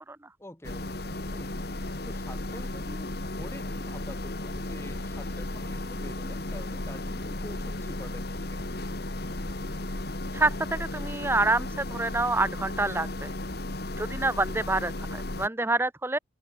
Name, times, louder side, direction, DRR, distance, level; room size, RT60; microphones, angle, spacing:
voice 1, 0.4-1.6 2.0-8.6, left 1 dB, 15° left, 1.2 m, -46 dB
sound 1, 0.6-15.5, left 1 dB, 55° left, 2.0 m, -34 dB
voice 2, 10.3-13.3 14.0-16.2, right 2 dB, 10° right, 0.7 m, -27 dB
open air
head